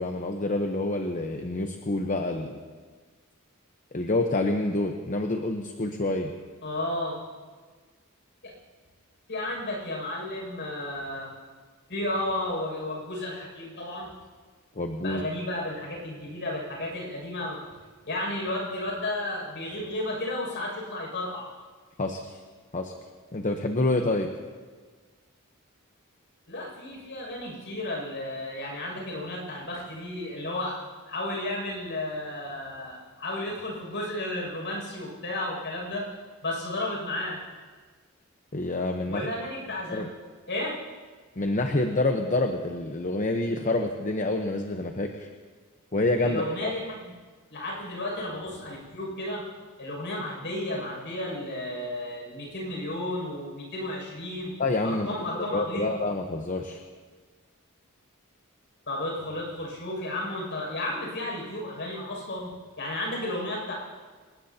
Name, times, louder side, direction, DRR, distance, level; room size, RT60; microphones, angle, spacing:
voice 1, 0.0-2.6 3.9-6.3 14.8-15.2 22.0-22.3 22.7-22.9 23.3-24.3 38.5-39.3 39.9-40.1 41.4-45.3 45.9-46.7 54.6-55.1 55.4-56.8, left 2 dB, 35° left, 4 dB, 0.9 m, -27 dB
voice 2, 6.6-7.2 8.4-8.5 9.3-11.3 11.9-14.1 15.0-17.6 18.0-21.4 26.5-30.8 31.1-36.0 36.4-37.4 39.1-40.1 40.5-40.8 46.2-47.1 47.5-49.5 49.8-54.5 54.8-56.0 58.9-62.5 62.8-63.7, left 1 dB, 55° left, -2 dB, 6.5 m, -33 dB
26.0 x 19.5 x 2.9 m, 1.5 s
head